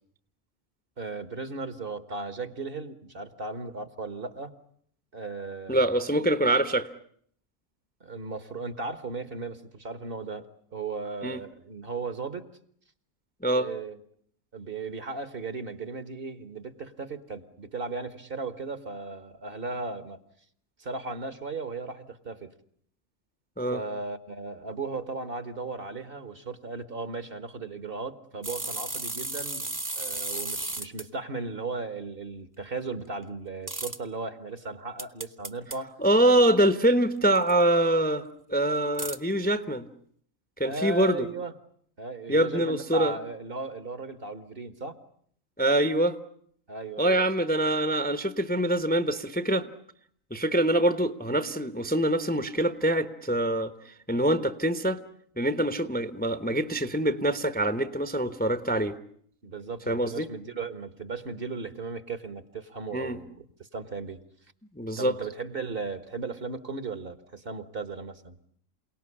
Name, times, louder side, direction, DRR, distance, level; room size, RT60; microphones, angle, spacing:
voice 1, 1.0-4.6 5.1-5.9 8.0-10.5 10.7-12.5 13.5-14.0 14.5-20.2 20.8-22.5 23.7-29.7 29.9-35.9 40.6-41.5 42.0-45.0 46.7-47.2 59.4-63.4 63.7-64.2 65.0-68.4, right 4 dB, 45° right, 12 dB, 1.6 m, -36 dB
voice 2, 5.7-6.9 11.2-11.4 13.4-13.7 23.6-23.8 36.0-38.2 38.5-39.9 40.6-41.3 42.3-43.2 45.6-46.2 47.0-49.7 50.3-55.0 55.4-59.0 59.9-60.3 62.9-63.2 64.8-65.1, right 1 dB, 10° left, 11 dB, 0.9 m, -24 dB
sound 1, 28.4-31.0 33.7-34.0 35.0-35.8 37.4-37.5 39.0-39.2, right 2 dB, 15° right, 1.1 m, -34 dB
28.0 x 18.0 x 9.9 m, 0.65 s
omnidirectional pair, 1.4 m